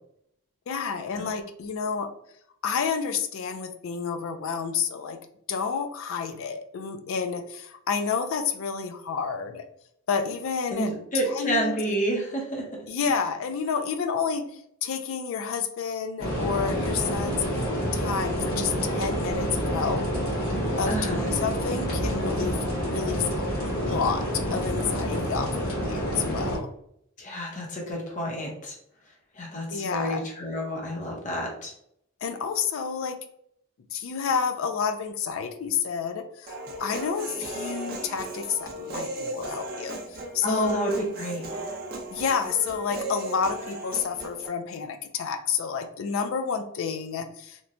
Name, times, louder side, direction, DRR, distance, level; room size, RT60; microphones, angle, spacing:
voice 1, 0.7-2.1 2.6-5.2 5.5-9.7 10.1-10.9 11.3-11.7 12.9-14.4 14.8-17.7 17.9-20.0 20.8-22.6 22.8-26.7 29.7-30.2 32.2-33.2 33.9-40.7 42.1-47.6, left 6 dB, 65° left, 7 dB, 0.3 m, -30 dB
voice 2, 10.7-12.6 13.1-13.2 20.9-21.3 27.2-28.8 29.3-31.7 40.4-41.4, right 1 dB, 35° left, -2 dB, 0.7 m, -29 dB
sound 1, 16.2-26.6, equal, 85° left, 1.3 m, -28 dB
Human voice, 36.5-44.5, right 1 dB, 45° right, 0.5 m, -36 dB
2.9 x 2.1 x 2.5 m, 0.72 s
head